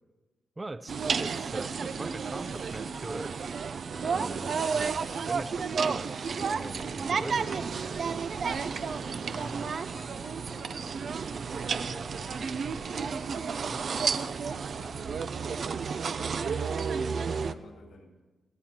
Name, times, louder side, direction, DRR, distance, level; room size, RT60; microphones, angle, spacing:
voice 1, 0.6-3.5 4.0-4.5 4.7-8.0, right 2 dB, 25° right, 12 dB, 0.7 m, -41 dB
sound 1, 0.9-17.5, right 5 dB, 65° right, 0.7 m, -32 dB
Wind instrument woodwind instrument, 1.6-3.5 3.9-5.8 6.4-8.3 8.9-10.8, left 2 dB, 25° left, 1.4 m, -52 dB
voice 2, 8.4-16.8 17.2-18.1, left 2 dB, 80° left, 1 dB, 5.5 m, -51 dB
22.0 x 14.5 x 4.5 m, 1.2 s
cardioid pair, 70°, 0 cm